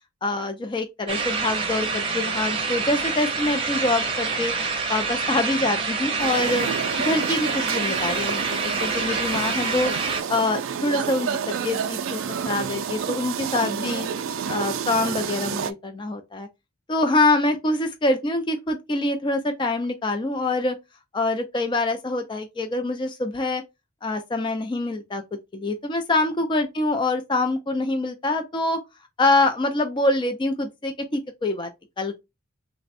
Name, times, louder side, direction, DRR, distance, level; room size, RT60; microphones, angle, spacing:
voice 1, 0.2-4.5 4.9-6.7 7.0-9.9 10.3-14.1 14.5-16.5 16.9-20.8 21.1-23.6 24.0-25.2 25.5-28.8 29.2-31.7 32.0-32.2, left 2 dB, 20° left, 0.3 m, -25 dB
sound 1, 1.1-10.2, right 4 dB, 25° right, 0.6 m, -27 dB
sound 2, 6.2-15.7, right 7 dB, 65° right, 0.3 m, -30 dB
3.3 x 2.1 x 4.0 m
head